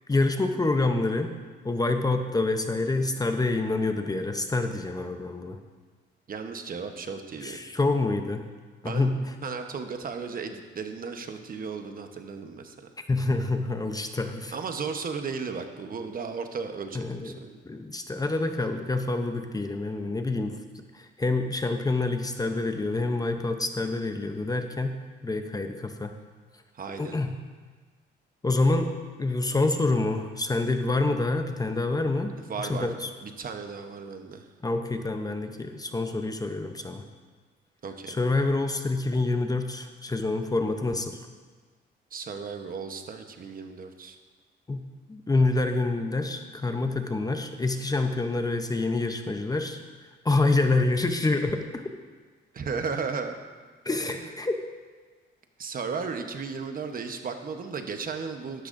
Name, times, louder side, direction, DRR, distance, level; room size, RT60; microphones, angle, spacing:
voice 1, 0.1-1.3 1.6-5.6 7.4-8.5 8.8-9.3 13.1-14.5 16.9-17.3 17.6-20.6 20.9-25.0 25.2-26.1 27.0-27.3 28.4-28.9 29.2-32.3 32.6-33.1 34.6-37.1 38.1-41.2 44.7-44.8 45.1-49.8 50.2-51.6 53.8-54.5, left 2 dB, 20° left, 6 dB, 0.7 m, -27 dB
voice 2, 6.3-7.6 8.8-9.1 9.4-12.7 14.5-17.6 26.7-27.2 32.5-32.9 33.2-34.5 37.8-38.2 42.1-44.2 52.5-53.3 55.6-58.7, right 5 dB, 45° right, 6 dB, 1.0 m, -35 dB
12.0 x 11.5 x 2.6 m, 1.4 s
cardioid pair, 90°, 20 cm